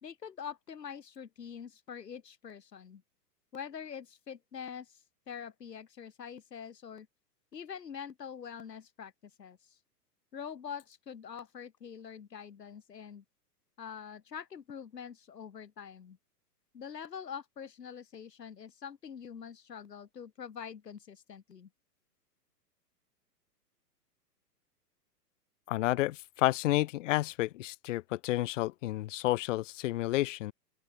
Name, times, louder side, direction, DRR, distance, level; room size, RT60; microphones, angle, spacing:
voice 1, 0.0-3.0 3.5-7.1 7.5-9.1 9.4-9.8 10.3-13.2 13.8-16.2 16.7-21.7, left 7 dB, 80° left, 1.9 m, -45 dB
voice 2, 25.7-30.5, left 16 dB, 50° left, 0.6 m, -30 dB
open air
hypercardioid pair, 115°, 48 cm